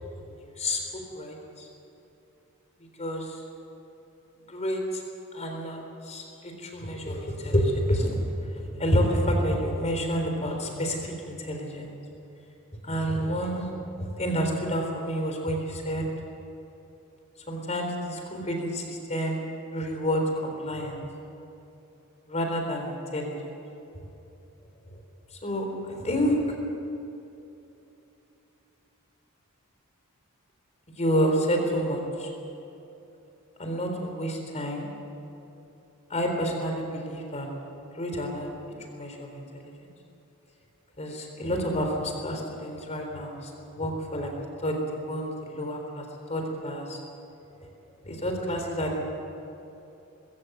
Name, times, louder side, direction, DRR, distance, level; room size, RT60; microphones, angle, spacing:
voice 1, 0.6-1.7 3.0-3.4 4.5-5.0 5.3-8.2 8.5-12.0 12.8-13.7 14.0-16.0 17.5-19.4 19.7-21.1 22.3-23.5 25.4-26.4 31.0-32.3 33.6-34.9 36.1-37.5 38.0-38.5 38.9-39.9 41.0-44.4 44.6-46.0 46.3-47.0 48.0-49.0, equal, 30° left, 3 dB, 3.8 m, -29 dB
20.5 x 16.5 x 8.0 m, 2.9 s
head